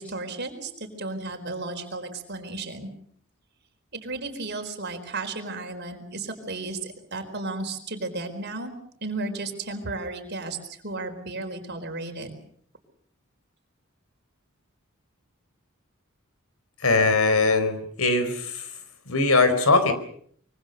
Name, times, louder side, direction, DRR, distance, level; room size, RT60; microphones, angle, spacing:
voice 1, 0.0-2.9 3.9-8.7 9.0-10.6 10.8-12.4, right 3 dB, 50° right, 5 dB, 4.5 m, -34 dB
voice 2, 16.8-18.6 19.1-19.9, left 3 dB, 80° left, 9 dB, 4.3 m, -21 dB
25.5 x 23.5 x 6.7 m, 0.63 s
head